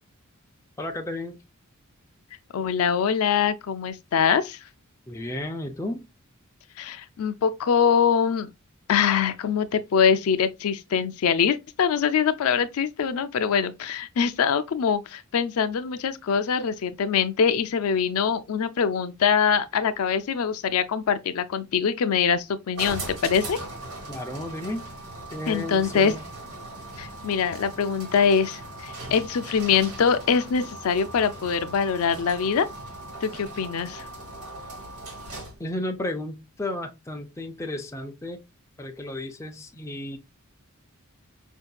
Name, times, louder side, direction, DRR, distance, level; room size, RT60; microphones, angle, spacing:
voice 1, 0.8-1.4 5.1-6.1 24.1-24.9 25.3-26.3 35.6-38.4 38.8-40.2, left 1 dB, 15° left, 0.4 m, -33 dB
voice 2, 2.5-4.6 6.8-8.5 8.9-23.6 25.5-26.1 27.0-32.7 33.2-34.0, left 7 dB, 75° left, 0.4 m, -23 dB
sound 1, 22.8-35.7, right 2 dB, 75° right, 1.6 m, -39 dB
5.0 x 2.7 x 2.2 m
head